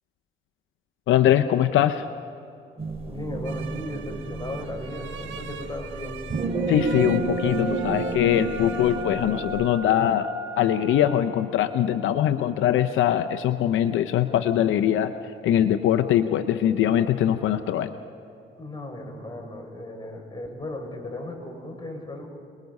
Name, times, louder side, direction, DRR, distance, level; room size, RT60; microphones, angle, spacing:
voice 1, 1.1-2.1 6.7-17.9, left 11 dB, 80° left, 9 dB, 0.7 m, -22 dB
sound 1, 2.8-9.6, right 4 dB, 30° right, 4.6 m, -31 dB
voice 2, 3.1-6.2 18.6-22.3, left 1 dB, 20° left, 2 dB, 5.6 m, -36 dB
sound 2, 3.4-9.0, right 9 dB, 70° right, 1.6 m, -42 dB
sound 3, 6.8-13.4, equal, 15° right, 6.0 m, -38 dB
28.0 x 20.5 x 5.4 m, 2.7 s
cardioid pair, 90°, 20 cm